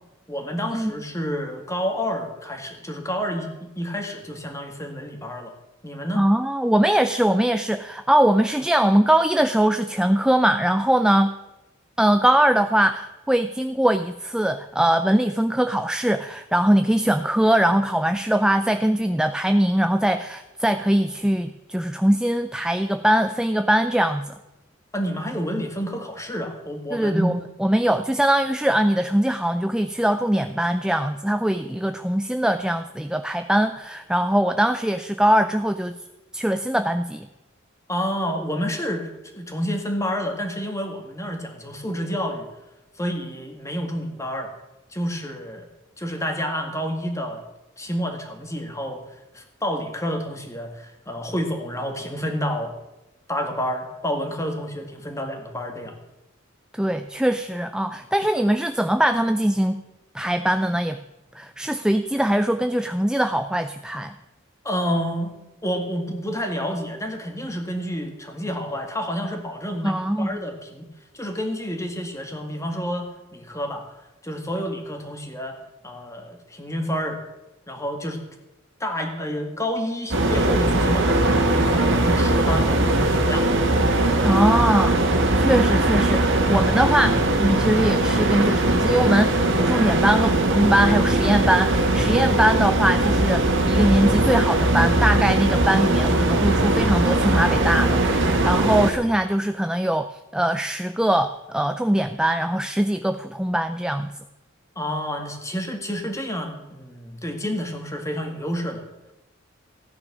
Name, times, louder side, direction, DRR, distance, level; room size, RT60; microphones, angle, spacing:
voice 1, 0.3-5.5 5.8-6.2 24.9-27.3 37.9-42.5 43.0-44.5 44.9-45.7 46.0-47.4 47.8-49.0 49.3-52.7 53.3-56.0 64.6-65.3 65.6-70.9 71.1-73.8 74.2-75.6 75.8-77.2 77.7-78.2 78.8-83.5 84.2-84.5 104.8-108.8, equal, 15° left, 4 dB, 2.1 m, -29 dB
voice 2, 6.1-11.3 12.0-24.3 26.9-36.0 36.3-37.3 56.7-59.8 60.1-61.0 61.3-64.1 69.8-70.4 84.2-85.0 85.4-104.1, right 1 dB, 5° right, 8 dB, 0.4 m, -21 dB
sound 1, 80.1-98.9, right 2 dB, 65° right, 1.9 m, -20 dB
15.5 x 9.8 x 6.2 m, 0.99 s
head